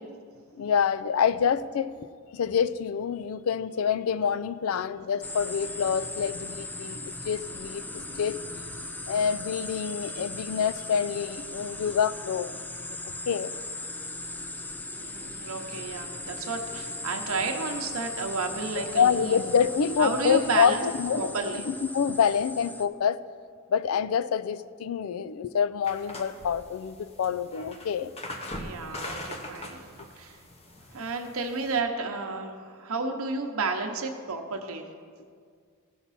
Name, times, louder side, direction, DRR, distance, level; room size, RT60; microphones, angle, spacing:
voice 1, 0.5-2.1 2.3-12.6 13.3-13.5 18.8-23.2 23.7-28.1, left 7 dB, 75° left, 0.4 m, -27 dB
sound 1, 5.2-22.9, left 2 dB, 10° left, 0.4 m, -38 dB
voice 2, 15.0-19.4 20.0-20.8 21.2-21.6 28.6-30.4 30.9-34.8, right 3 dB, 75° right, 0.9 m, -32 dB
sound 2, 25.8-31.8, left 1 dB, 30° left, 0.9 m, -41 dB
16.0 x 5.9 x 4.1 m
head